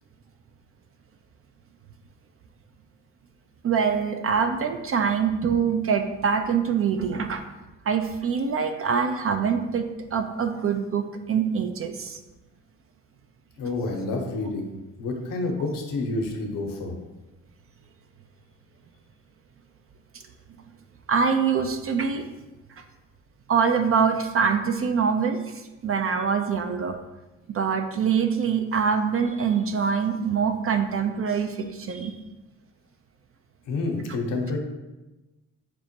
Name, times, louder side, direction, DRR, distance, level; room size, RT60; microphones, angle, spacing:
voice 1, 3.6-7.4 7.9-12.2 21.1-22.3 23.5-27.0 27.5-32.2, right 6 dB, 40° right, 6 dB, 0.4 m, -24 dB
voice 2, 13.6-14.7 15.0-17.0 33.7-34.6, left 2 dB, 70° left, 2 dB, 0.8 m, -28 dB
5.9 x 2.1 x 2.8 m, 1.1 s
supercardioid pair, 50°, 34 cm